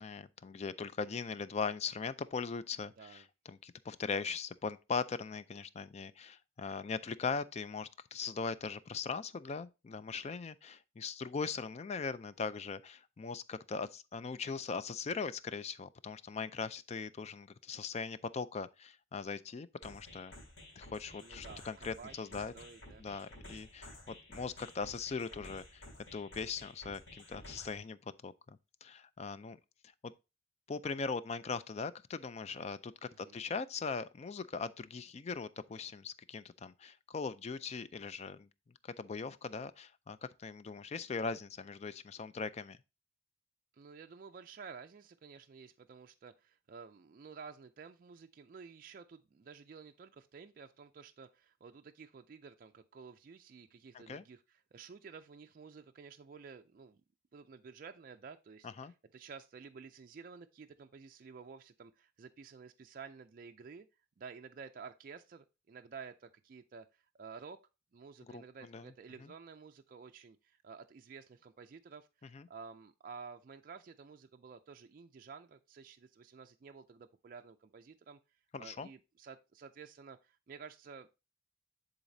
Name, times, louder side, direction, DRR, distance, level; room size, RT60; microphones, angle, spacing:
voice 1, 0.0-20.3 20.8-22.5 23.0-25.8 26.1-29.6 30.0-30.1 30.7-38.5 38.8-42.8 53.9-54.2 58.6-58.9 68.3-68.9 69.2-69.3 72.3-72.5 78.5-78.9, left 5 dB, 35° left, 0.3 m, -40 dB
voice 2, 3.0-3.3 21.2-23.0 33.2-33.4 43.7-57.0 57.3-63.9 64.2-67.6 67.9-78.2 78.6-81.1, right 5 dB, 45° right, 0.3 m, -52 dB
sound 1, 19.8-27.8, left 1 dB, 75° left, 3.1 m, -53 dB
10.0 x 4.0 x 2.6 m
head